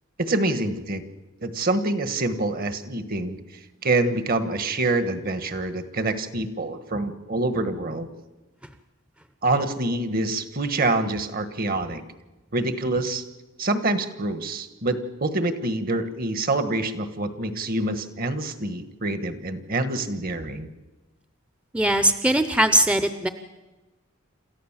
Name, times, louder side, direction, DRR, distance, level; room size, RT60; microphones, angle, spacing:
voice 1, 0.2-1.0 1.4-3.4 3.8-8.1 9.4-12.0 12.5-13.2 13.6-20.7, right 2 dB, 45° right, 11 dB, 1.4 m, -26 dB
voice 2, 21.7-23.3, right 1 dB, 5° right, 10 dB, 0.7 m, -20 dB
27.5 x 14.0 x 7.4 m, 1.1 s
head